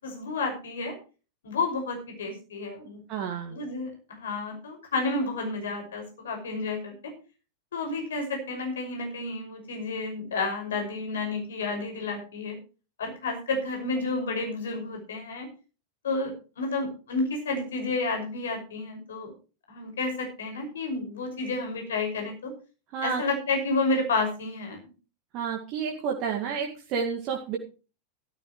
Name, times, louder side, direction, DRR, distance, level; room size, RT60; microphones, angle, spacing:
voice 1, 0.0-0.9 1.4-3.0 3.5-6.9 7.7-12.6 13.0-15.5 16.0-19.3 19.7-22.5 23.0-24.8, left 3 dB, 65° left, 3 dB, 6.0 m, -30 dB
voice 2, 3.1-3.6 22.9-23.2 25.3-27.6, right 6 dB, 40° right, 0 dB, 2.2 m, -30 dB
14.5 x 14.0 x 3.2 m, 0.34 s
figure-of-eight pair, 90°, 0 cm